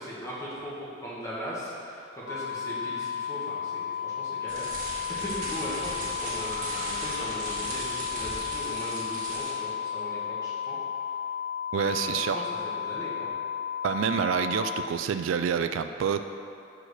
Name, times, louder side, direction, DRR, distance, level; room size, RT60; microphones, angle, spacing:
voice 1, 0.0-10.8 11.7-13.3, equal, 15° left, -9 dB, 1.8 m, -38 dB
sound 1, 2.3-14.9, left 8 dB, 80° left, 0.4 m, -33 dB
sound 2, 4.5-9.7, right 1 dB, 40° right, 1.9 m, -37 dB
voice 2, 11.7-12.4 13.8-16.3, right 7 dB, 75° right, 9 dB, 0.3 m, -27 dB
6.1 x 4.9 x 6.5 m, 2.6 s
head